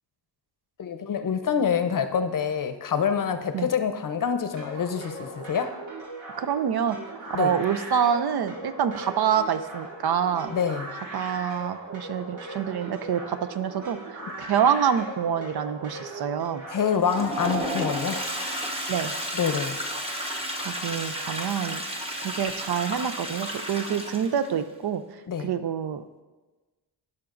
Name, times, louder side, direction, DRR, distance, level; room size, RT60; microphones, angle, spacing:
voice 1, 0.8-5.7 7.3-7.5 10.5-10.9 16.7-18.2 19.3-19.8 25.3-25.5, left 7 dB, 45° left, 8 dB, 0.7 m, -26 dB
sound 1, 4.6-18.4, right 1 dB, 85° right, 1.8 m, -39 dB
voice 2, 6.4-7.0 7.4-10.6 11.1-16.6 18.9-19.1 20.6-21.8 22.2-25.0 25.4-26.0, right 8 dB, 60° right, 11 dB, 0.6 m, -26 dB
Toilet flush, 16.9-24.5, equal, 15° right, 1.1 m, -32 dB
15.0 x 5.9 x 2.5 m, 1.2 s
cardioid pair, 95°, 44 cm